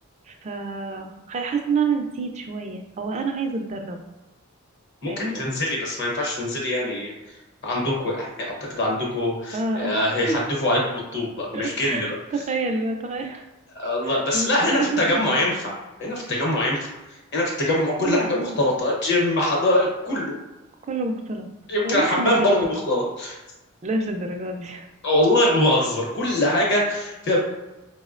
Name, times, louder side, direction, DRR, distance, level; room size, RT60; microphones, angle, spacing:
voice 1, 0.3-4.0 5.1-5.4 9.5-10.4 11.5-13.4 14.0-15.2 18.0-18.6 20.9-21.5 21.8-22.8 23.8-24.9, right 3 dB, 30° right, 4 dB, 0.3 m, -28 dB
voice 2, 5.0-7.1 7.6-12.1 13.8-16.9 17.3-20.4 21.7-23.4 25.0-27.4, left 1 dB, 50° left, -2 dB, 0.8 m, -23 dB
4.2 x 2.0 x 2.4 m, 1.0 s
head